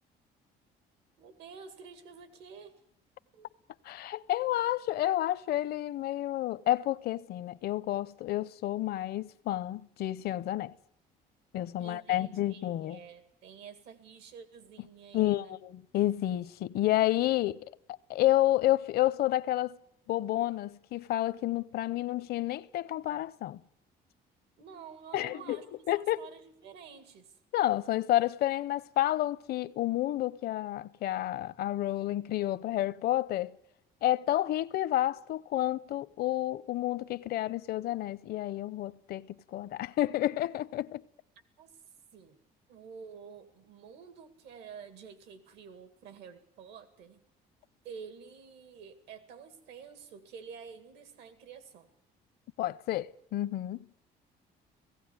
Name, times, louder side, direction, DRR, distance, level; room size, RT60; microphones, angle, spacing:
voice 1, 1.2-2.7 3.3-3.5 11.8-15.6 24.6-25.6 25.9-27.3 41.6-41.8 42.1-42.4 42.7-47.2 47.8-51.9, right 6 dB, 85° right, 2.1 m, -49 dB
voice 2, 3.8-10.7 11.5-13.0 15.1-17.6 18.1-19.8 20.1-23.6 25.1-25.6 25.9-26.2 27.5-33.6 34.0-39.3 39.5-41.0 52.6-53.9, left 14 dB, 70° left, 0.7 m, -30 dB
17.5 x 16.0 x 9.6 m
cardioid pair, 110°, 17 cm